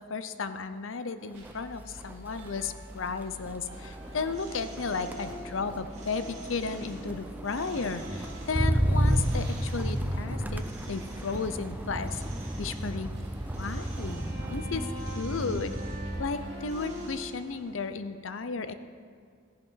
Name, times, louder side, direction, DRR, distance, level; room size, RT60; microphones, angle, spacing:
voice 1, 0.0-10.6 10.9-12.2 12.6-13.1 13.6-14.2 14.5-14.8 15.1-15.8 16.2-18.7, left 4 dB, 75° left, 11 dB, 0.7 m, -34 dB
Motor vehicle (road), 1.3-1.6 2.0-16.4 16.8-17.2, equal, 10° right, 0.6 m, -32 dB
sound 1, 1.3-17.1, equal, 60° right, 3.4 m, -44 dB
sound 2, 3.7-17.9, right 2 dB, 35° right, 2.4 m, -51 dB
14.5 x 10.5 x 4.6 m, 2.3 s
head